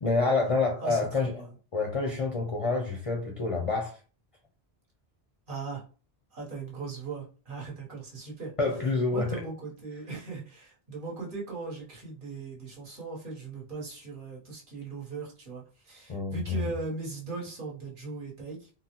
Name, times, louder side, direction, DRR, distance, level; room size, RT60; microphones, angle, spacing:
voice 1, 0.0-1.4 1.7-4.0 8.6-9.4 16.1-16.6, left 3 dB, 45° left, 1 dB, 0.5 m, -28 dB
voice 2, 0.8-1.5 5.5-5.8 6.3-8.5 9.1-18.7, right 4 dB, 55° right, -3 dB, 1.1 m, -38 dB
3.6 x 2.0 x 2.8 m, 0.37 s
omnidirectional pair, 1.1 m